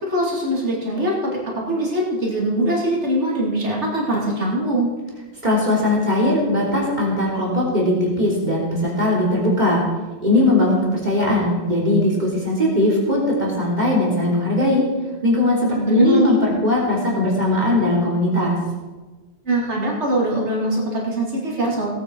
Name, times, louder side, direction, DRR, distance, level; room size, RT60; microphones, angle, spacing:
voice 1, 0.0-4.9 15.7-16.4 19.4-21.9, right 1 dB, 85° right, -3 dB, 3.0 m, -22 dB
voice 2, 5.4-9.8 10.2-14.8 15.2-18.6, left 1 dB, 40° right, -4 dB, 3.5 m, -19 dB
17.5 x 8.9 x 4.6 m, 1.3 s
omnidirectional pair, 1.1 m